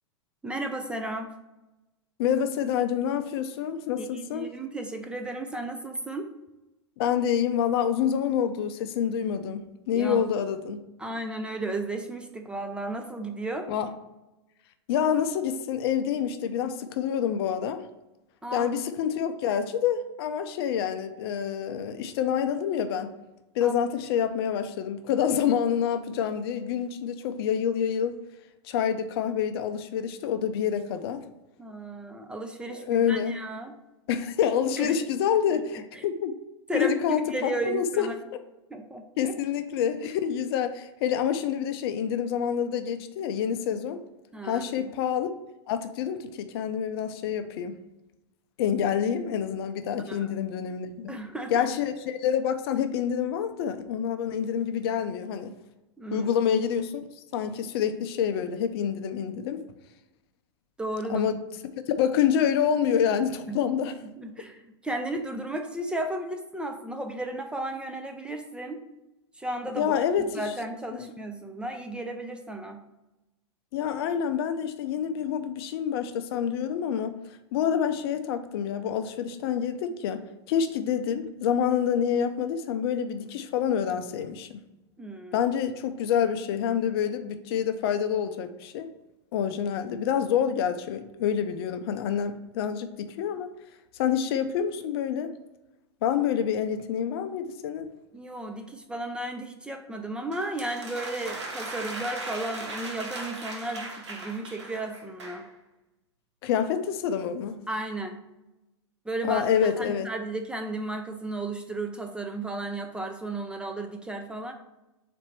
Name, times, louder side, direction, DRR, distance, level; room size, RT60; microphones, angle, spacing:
voice 1, 0.4-1.3 4.0-6.3 9.9-10.2 11.0-13.7 18.4-18.7 23.6-23.7 31.6-33.8 34.8-35.0 35.5-35.6 35.9-36.1 36.7-38.1 38.7-39.3 44.3-44.9 50.1-50.3 51.1-51.7 56.0-56.3 60.8-61.3 63.5-63.6 64.2-68.8 69.3-72.8 85.0-85.5 98.1-105.5 107.7-108.2 109.0-114.5, right 2 dB, 5° right, 4 dB, 0.4 m, -34 dB
voice 2, 2.2-4.5 7.0-9.6 9.9-10.8 13.7-13.9 14.9-17.8 18.5-23.1 23.5-28.2 28.6-31.2 32.8-33.3 34.1-36.3 36.7-38.1 38.3-38.4 39.2-44.0 44.4-45.3 45.7-47.8 48.6-51.2 51.5-55.5 56.1-57.0 57.3-59.6 61.1-61.3 61.9-63.9 69.8-70.3 70.9-71.1 73.7-77.1 77.5-80.2 80.5-84.6 85.3-88.9 89.3-93.5 94.0-95.3 96.0-97.9 106.4-107.6 109.3-110.1, left 8 dB, 60° left, 9 dB, 0.5 m, -27 dB
sound 1, 100.3-105.5, right 2 dB, 85° right, 1.0 m, -38 dB
4.2 x 2.6 x 4.4 m, 0.99 s
hypercardioid pair, 110°, 15 cm